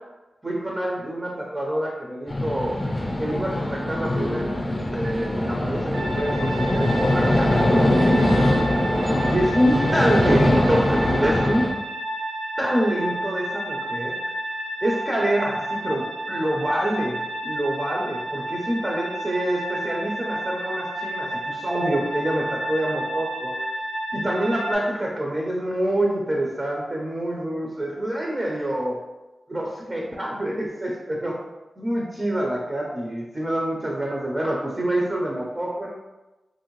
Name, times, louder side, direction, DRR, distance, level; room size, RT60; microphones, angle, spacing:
voice 1, 0.4-2.8 3.2-4.6 4.9-8.3 9.2-11.6 12.6-14.2 14.8-23.5 24.1-29.0 29.5-31.4 31.8-35.9, right 1 dB, 25° right, -2 dB, 0.6 m, -26 dB
sound 1, 2.3-11.7, left 1 dB, 25° left, 0.6 m, -22 dB
sound 2, 5.9-24.7, right 1 dB, 75° right, 1.0 m, -31 dB
3.0 x 2.6 x 3.0 m, 1.1 s
wide cardioid pair, 75°, 0 cm